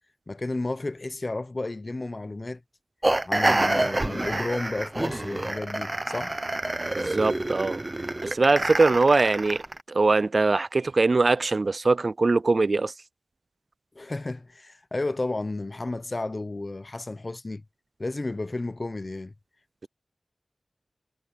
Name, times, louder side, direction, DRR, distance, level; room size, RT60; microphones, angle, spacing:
voice 1, 0.3-2.6 3.2-6.4 13.9-17.6 18.0-19.3, left 2 dB, 40° left, 0.9 m, -32 dB
sound 1, 3.0-9.8, right 2 dB, 25° right, 0.7 m, -27 dB
voice 2, 6.9-7.8 8.2-9.6 9.9-12.9, right 3 dB, 50° right, 0.3 m, -22 dB
wide cardioid pair, 90°, 0 cm